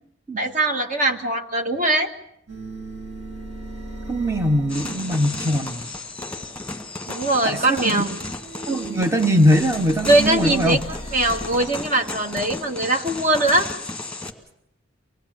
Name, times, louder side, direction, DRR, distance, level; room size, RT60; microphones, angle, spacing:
voice 1, 0.4-2.1 7.1-8.2 10.0-10.8 11.1-13.7, right 2 dB, 40° right, 5 dB, 1.6 m, -21 dB
sound 1, 2.5-6.0 8.3-12.7, right 2 dB, 70° right, 6.9 m, -38 dB
voice 2, 4.1-5.8 7.4-8.0 8.7-10.8, equal, 15° right, 6 dB, 0.8 m, -21 dB
sound 2, 4.7-14.3, left 2 dB, 5° left, 1.8 m, -34 dB
24.5 x 19.0 x 7.4 m, 0.73 s
head